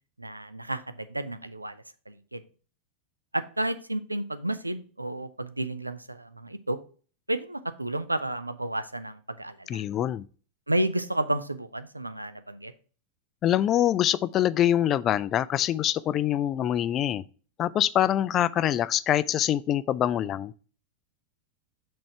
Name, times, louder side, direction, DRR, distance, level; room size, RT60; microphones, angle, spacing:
voice 1, 0.2-1.8 2.1-2.4 3.3-6.8 7.3-9.8 10.7-12.7, right 1 dB, 85° right, 0.4 m, -31 dB
voice 2, 9.7-10.2 13.4-17.2 17.6-20.5, left 11 dB, 30° left, 0.3 m, -24 dB
6.3 x 4.2 x 4.6 m
figure-of-eight pair, 90°, 0 cm